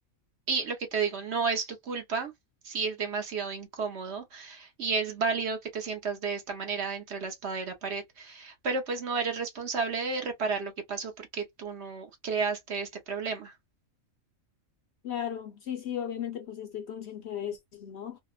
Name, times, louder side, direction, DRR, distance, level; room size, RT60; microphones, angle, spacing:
voice 1, 0.5-2.3 2.6-13.5, right 5 dB, 60° right, 0.9 m, -32 dB
voice 2, 15.0-18.2, left 9 dB, 65° left, 0.7 m, -36 dB
2.7 x 2.1 x 2.2 m
omnidirectional pair, 1.4 m